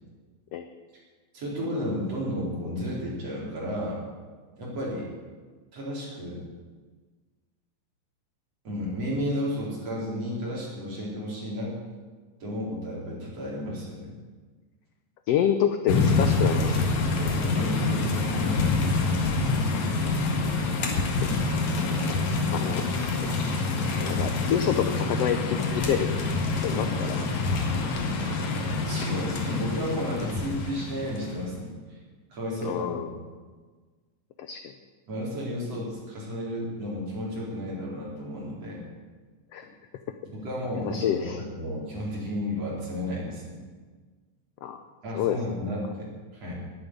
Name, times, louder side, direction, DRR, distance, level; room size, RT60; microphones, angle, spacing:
voice 1, 1.3-4.0 4.6-5.1 5.7-6.4 8.7-11.8 12.4-14.1 17.5-18.8 26.7-26.9 28.8-31.7 32.3-33.2 35.1-38.8 40.3-43.6 45.0-46.5, equal, 50° right, -4 dB, 5.2 m, -32 dB
voice 2, 15.3-16.8 17.4-17.5 22.5-23.3 23.8-26.2 26.6-27.2 32.6-33.1 34.4-34.7 39.5-39.7 40.8-41.4 44.6-44.8 45.1-45.4, left 9 dB, 80° left, 8 dB, 1.4 m, -28 dB
sound 1, 15.9-31.4, left 3 dB, 60° left, 3.0 m, -26 dB
11.5 x 11.0 x 9.7 m, 1.4 s
omnidirectional pair, 3.7 m